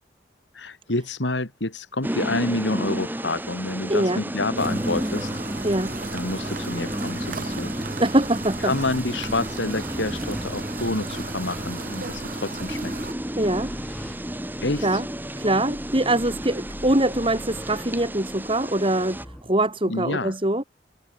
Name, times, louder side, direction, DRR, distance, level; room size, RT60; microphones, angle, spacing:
voice 1, 0.5-5.3 6.1-7.8 8.6-12.9 14.6-14.9 19.9-20.3, left 2 dB, 85° left, 2.7 m, -28 dB
sound 1, 2.0-19.2, equal, 10° right, 4.2 m, -32 dB
voice 2, 3.9-4.2 5.6-6.0 8.0-8.7 13.4-13.7 14.8-15.1 15.4-20.6, right 1 dB, 30° right, 3.8 m, -23 dB
sound 2, 4.6-13.1, right 3 dB, 50° right, 1.9 m, -36 dB
sound 3, 6.8-19.4, equal, 5° left, 4.5 m, -42 dB
head